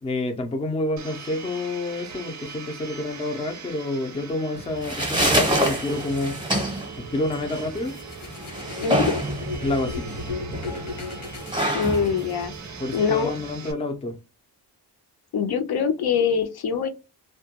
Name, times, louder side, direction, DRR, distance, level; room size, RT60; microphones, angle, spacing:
voice 1, 0.0-6.4 7.0-7.9 9.6-10.1 12.8-14.1, left 2 dB, 15° left, 0.4 m, -28 dB
Domestic sounds home sounds, 1.0-13.7, right 6 dB, 45° right, 0.5 m, -42 dB
sound 1, 4.6-13.6, right 1 dB, 10° right, 0.7 m, -27 dB
sound 2, 7.7-12.7, left 3 dB, 85° left, 1.1 m, -35 dB
voice 2, 8.8-9.2 11.7-12.5 12.9-13.3 15.3-16.9, left 6 dB, 65° left, 0.5 m, -23 dB
2.2 x 2.2 x 2.8 m
wide cardioid pair, 175°, 40 cm